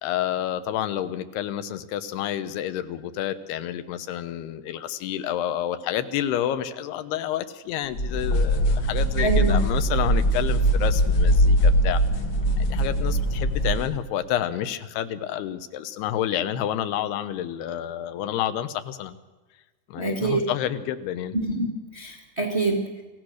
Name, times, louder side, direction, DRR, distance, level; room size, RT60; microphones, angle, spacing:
voice 1, 0.0-12.0 12.6-19.2 19.9-21.4, left 11 dB, 80° left, 11 dB, 3.0 m, -29 dB
sound 1, 8.0-14.0, equal, 40° left, 1.9 m, -21 dB
voice 2, 9.2-9.6 20.0-20.4 21.3-21.7 21.9-22.8, right 3 dB, 60° right, 0 dB, 0.6 m, -25 dB
27.0 x 15.5 x 6.4 m, 1.2 s
omnidirectional pair, 4.7 m